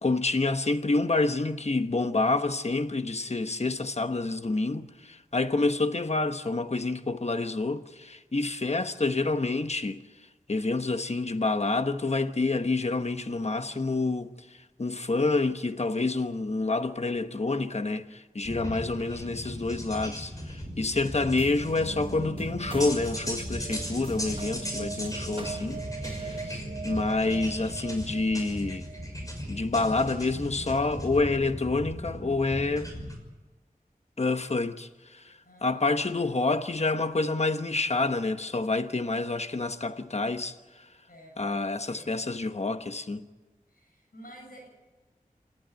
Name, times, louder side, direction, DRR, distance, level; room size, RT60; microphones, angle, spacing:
voice 1, 0.0-10.0 10.5-25.8 26.1-28.9 29.5-32.9 34.2-40.9 41.4-43.3, left 3 dB, 45° left, 1.1 m, -28 dB
sound 1, 18.4-33.2, equal, 25° left, 6.1 m, -37 dB
sound 2, 21.4-30.1, right 4 dB, 35° right, 1.5 m, -40 dB
voice 2, 27.2-27.6 35.4-36.0 41.1-42.3 43.7-44.7, equal, 75° left, 7.3 m, -51 dB
28.0 x 12.5 x 9.5 m
wide cardioid pair, 65°, 15 cm